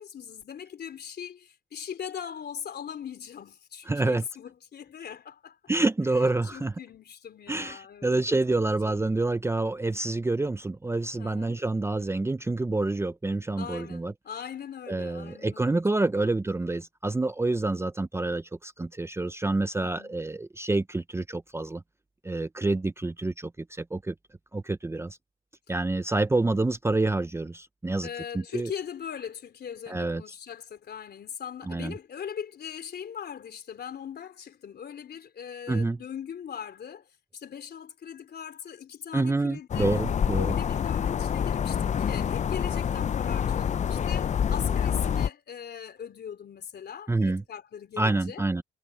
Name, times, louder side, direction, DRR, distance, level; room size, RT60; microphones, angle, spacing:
voice 1, 0.0-5.6 6.1-6.2 6.5-8.6 8.8-9.0 11.2-11.6 13.6-15.8 16.1-16.4 19.8-20.2 28.0-39.9 40.4-48.4, left 8 dB, 55° left, 3.5 m, -40 dB
voice 2, 3.9-4.2 5.7-6.7 7.5-14.1 14.9-21.8 22.2-24.1 24.5-25.2 25.7-28.1 28.3-28.7 29.9-30.2 31.7-31.9 35.7-36.0 39.1-40.5 47.1-47.4 48.0-48.6, right 2 dB, 15° right, 0.6 m, -27 dB
sound 1, 39.7-45.3, left 8 dB, 35° left, 0.5 m, -27 dB
cardioid pair, 90°, 20 cm